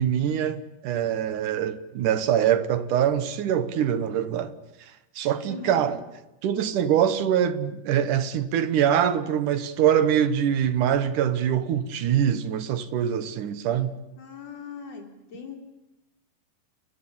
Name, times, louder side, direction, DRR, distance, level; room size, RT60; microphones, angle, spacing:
voice 1, 0.0-4.6 5.2-6.0 6.4-14.0, right 9 dB, 65° right, 2.5 m, -24 dB
voice 2, 5.5-5.9 14.2-15.6, left 5 dB, 45° left, 4.7 m, -40 dB
30.0 x 21.0 x 8.7 m
omnidirectional pair, 4.5 m